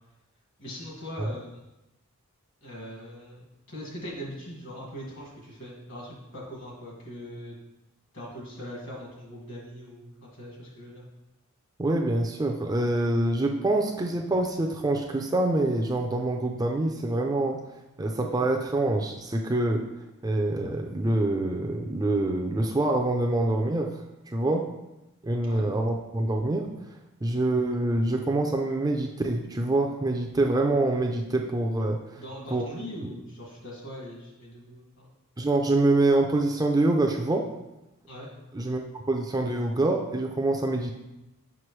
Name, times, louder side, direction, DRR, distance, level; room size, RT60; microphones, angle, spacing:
voice 1, 0.6-1.6 2.6-7.6 8.1-11.0 25.4-25.7 32.1-35.1 38.1-38.3, equal, 60° left, -3 dB, 1.9 m, -41 dB
voice 2, 11.8-17.6 18.0-19.8 20.2-23.9 24.3-24.7 25.2-26.7 27.2-32.2 32.5-32.7 32.9-33.1 35.4-37.4 38.5-38.8 39.1-40.9, right 2 dB, 15° right, 2 dB, 0.4 m, -25 dB
6.0 x 5.6 x 3.2 m, 0.95 s
head